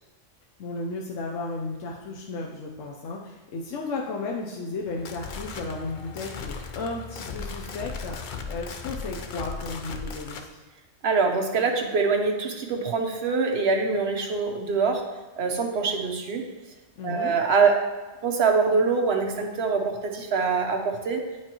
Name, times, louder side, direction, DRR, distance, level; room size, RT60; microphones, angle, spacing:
voice 1, 0.6-10.6 17.0-17.4, left 3 dB, 80° left, -1 dB, 1.0 m, -34 dB
sound 1, 4.8-10.5, left 5 dB, 55° left, 0.5 m, -37 dB
voice 2, 11.0-15.0 15.4-16.5 17.0-17.8 18.2-21.2, right 4 dB, 60° right, 2 dB, 1.0 m, -24 dB
9.2 x 4.6 x 2.9 m, 1.2 s
omnidirectional pair, 1.3 m